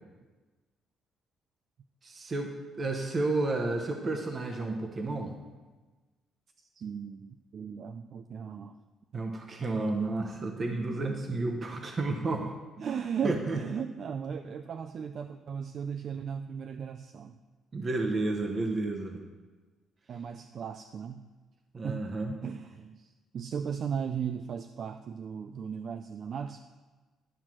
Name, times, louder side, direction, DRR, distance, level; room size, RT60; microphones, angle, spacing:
voice 1, 2.0-5.3 9.1-12.5 13.2-13.6 17.7-19.2 21.7-22.3, right 2 dB, 30° right, 2 dB, 0.8 m, -31 dB
voice 2, 6.8-8.8 9.1-9.3 10.3-10.9 12.8-17.4 20.1-21.3 21.8-22.1 22.4-26.6, right 7 dB, 45° right, 8 dB, 0.3 m, -37 dB
11.0 x 4.5 x 7.4 m, 1.3 s
cardioid pair, 155°, 0 cm